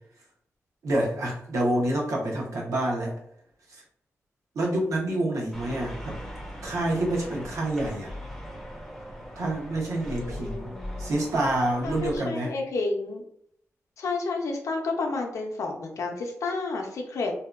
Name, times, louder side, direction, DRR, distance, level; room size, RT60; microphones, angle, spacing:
voice 1, 0.8-3.1 3.7-3.8 4.5-6.2 6.6-8.1 9.4-12.5, right 1 dB, 75° right, -1 dB, 0.7 m, -27 dB
sound 1, 5.5-12.2, equal, 5° left, 0.4 m, -39 dB
voice 2, 10.2-11.2 11.8-13.2 14.0-17.3, left 3 dB, 75° left, 2 dB, 0.5 m, -31 dB
2.6 x 2.2 x 2.3 m, 0.70 s
wide cardioid pair, 170°, 5 cm